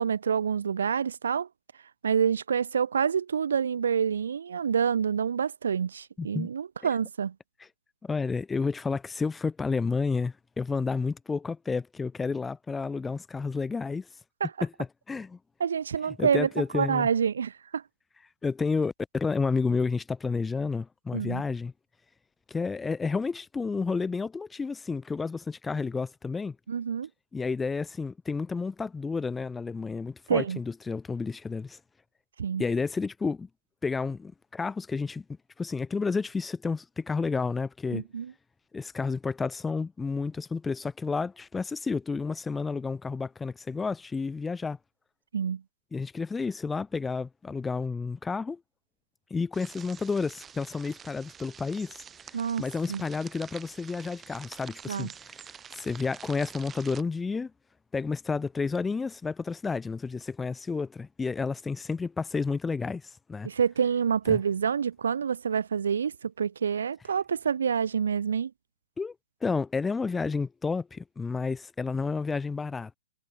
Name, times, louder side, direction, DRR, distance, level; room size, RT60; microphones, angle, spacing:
voice 1, 0.0-1.5 2.0-7.3 14.4-14.5 15.6-17.8 21.1-21.4 26.7-27.1 30.3-30.6 32.4-32.6 37.9-38.3 45.3-45.6 52.3-52.6 52.9-53.0 54.9-55.1 63.4-68.5, right 7 dB, 60° right, 1.3 m, -27 dB
voice 2, 6.2-6.5 7.6-7.7 8.0-14.1 14.6-14.7 15.1-15.4 16.2-17.1 18.4-21.7 22.5-26.6 27.3-31.8 32.6-33.5 33.8-35.2 35.6-38.0 38.7-44.8 45.9-48.6 49.3-55.4 55.7-57.5 57.9-63.5 64.3-64.4 69.0-69.1 69.4-73.0, left 4 dB, 10° left, 1.0 m, -31 dB
sound 1, 49.5-57.0, right 7 dB, 15° right, 6.8 m, -48 dB
figure-of-eight pair, 125°, 0 cm